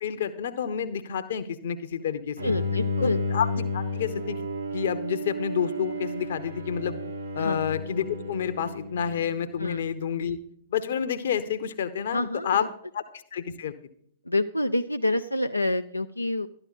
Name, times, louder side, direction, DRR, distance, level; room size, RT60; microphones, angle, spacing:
voice 1, 0.0-2.5 3.0-4.4 4.7-6.9 7.3-10.4 10.7-12.7 12.9-13.0 13.3-13.7, left 8 dB, 60° left, 10 dB, 0.9 m, -29 dB
voice 2, 2.4-3.2 7.4-7.6 9.6-9.8 12.1-12.7 14.3-16.5, left 2 dB, 90° left, 7 dB, 0.4 m, -27 dB
Bowed string instrument, 2.4-9.6, left 2 dB, 80° right, 1.9 m, -32 dB
12.0 x 11.0 x 4.1 m, 0.62 s
figure-of-eight pair, 105°, 0 cm